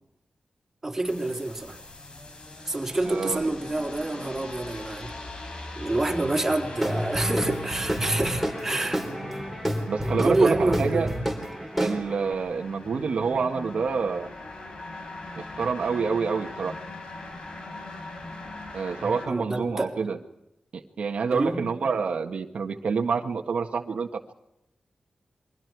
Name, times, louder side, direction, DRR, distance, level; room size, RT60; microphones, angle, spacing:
voice 1, 0.8-1.8 2.6-5.1 5.7-9.0 10.2-11.1 19.0-19.9 21.3-21.7, right 2 dB, 20° right, -1 dB, 3.9 m, -27 dB
sound 1, 1.0-19.3, left 2 dB, 50° left, 4.3 m, -41 dB
voice 2, 3.0-3.5 9.9-11.1 11.8-14.3 15.4-16.7 18.7-20.2 20.7-24.3, right 5 dB, 85° right, 3 dB, 1.7 m, -27 dB
Guitar / Drum, 6.8-12.3, equal, ahead, 3.9 m, -30 dB
28.5 x 23.5 x 4.8 m, 0.85 s
wide cardioid pair, 155°, 2 cm